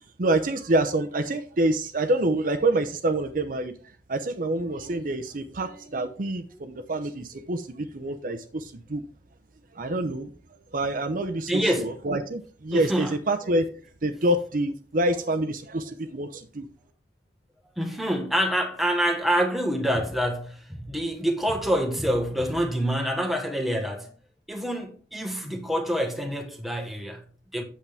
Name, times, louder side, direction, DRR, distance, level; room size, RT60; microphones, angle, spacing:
voice 1, 0.2-3.7 4.1-9.0 9.7-10.3 10.7-13.6 14.0-16.7, right 1 dB, 50° right, 0.7 m, -27 dB
voice 2, 11.5-12.0 12.7-13.2 17.8-24.1 24.5-27.6, equal, ahead, 1.3 m, -26 dB
8.4 x 7.2 x 3.4 m
head